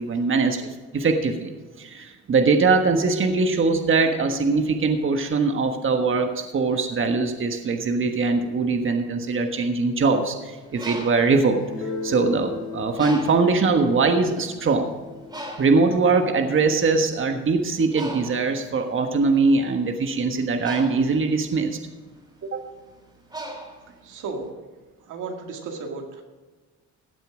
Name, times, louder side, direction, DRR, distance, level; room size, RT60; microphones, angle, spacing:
voice 1, 0.0-1.5 1.8-15.0 15.6-21.8 22.5-22.7, right 4 dB, 40° right, 5 dB, 1.4 m, -22 dB
Bird, 10.6-12.4 13.0-13.6 14.3-14.5 14.7-24.4, right 1 dB, 15° right, 3.4 m, -39 dB
Guitar, 11.6-17.1, left 4 dB, 85° left, 1.9 m, -37 dB
voice 2, 23.8-24.6 25.0-26.2, right 4 dB, 85° right, 2 dB, 2.2 m, -35 dB
16.0 x 7.9 x 5.0 m, 1.3 s
cardioid pair, 90°, 30 cm